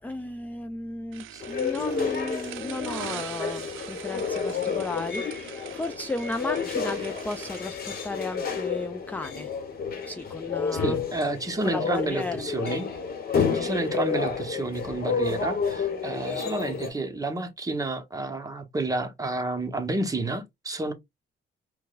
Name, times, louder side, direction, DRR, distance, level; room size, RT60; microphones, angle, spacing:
voice 1, 0.0-9.5 10.1-11.0 11.6-12.4, left 2 dB, 10° left, 0.3 m, -34 dB
sound 1, 1.1-7.6, right 13 dB, 85° right, 0.4 m, -42 dB
sound 2, 1.4-16.9, left 5 dB, 50° left, 1.0 m, -30 dB
voice 2, 10.7-12.9 13.3-20.9, right 2 dB, 15° right, 0.9 m, -30 dB
4.6 x 2.1 x 2.3 m
cardioid pair, 90°, 20 cm